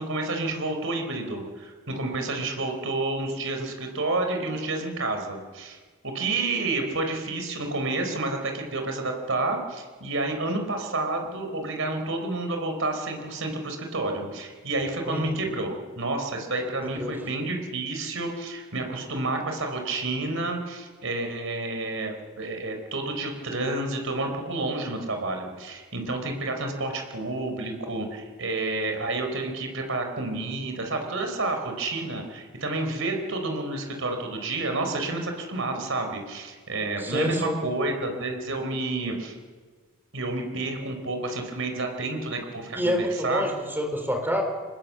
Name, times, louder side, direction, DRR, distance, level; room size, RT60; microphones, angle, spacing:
voice 1, 0.0-5.8 6.0-39.4 40.1-43.4, right 2 dB, 70° right, 4 dB, 4.3 m, -30 dB
voice 2, 37.0-37.6 42.8-44.4, equal, 10° right, 3 dB, 4.3 m, -27 dB
25.5 x 19.5 x 7.6 m, 1.5 s
head